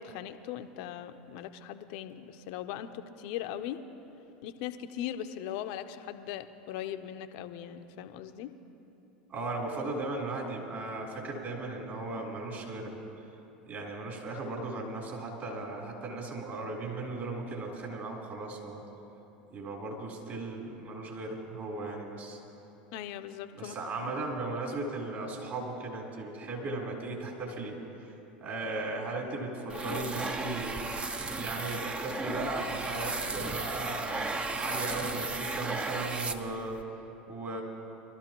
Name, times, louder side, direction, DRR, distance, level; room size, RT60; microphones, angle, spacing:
voice 1, 0.0-3.8 4.4-8.5 22.9-23.7 24.0-24.2, left 11 dB, 60° left, 9 dB, 0.7 m, -39 dB
voice 2, 9.3-13.0 13.7-18.8 19.5-22.4 23.6-28.1 28.4-30.7 31.3-36.8 37.3-37.6, right 2 dB, 40° right, -2 dB, 3.8 m, -37 dB
sound 1, 29.7-36.8, right 3 dB, 20° right, 0.8 m, -35 dB
23.5 x 13.0 x 3.0 m, 2.9 s
hypercardioid pair, 80°, 5 cm